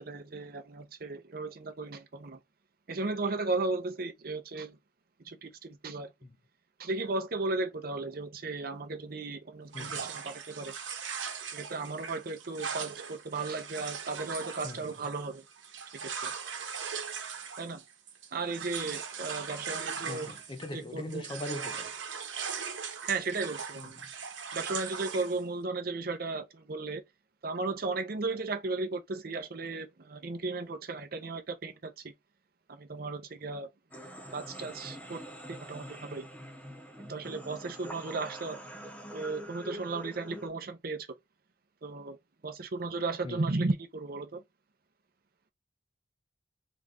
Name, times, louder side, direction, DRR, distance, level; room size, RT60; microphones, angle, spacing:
voice 1, 0.0-2.4 2.9-4.8 5.2-6.1 6.8-10.8 11.5-15.4 16.0-16.3 17.6-17.8 18.3-20.3 20.7-21.3 23.0-24.0 24.5-27.0 27.4-32.1 32.7-33.7 34.3-35.2 35.5-36.3 37.0-38.6 39.1-41.1 41.8-42.2 42.4-44.4, right 3 dB, 55° right, 0.6 m, -35 dB
voice 2, 9.7-10.1 14.6-14.9 20.1-21.9 23.8-23.9 43.2-43.4, left 1 dB, 25° left, 0.4 m, -40 dB
sound 1, 9.7-20.8 21.1-25.4, right 6 dB, 85° right, 1.0 m, -39 dB
sound 2, 33.9-40.5, equal, 10° left, 0.8 m, -45 dB
3.7 x 2.4 x 3.4 m
head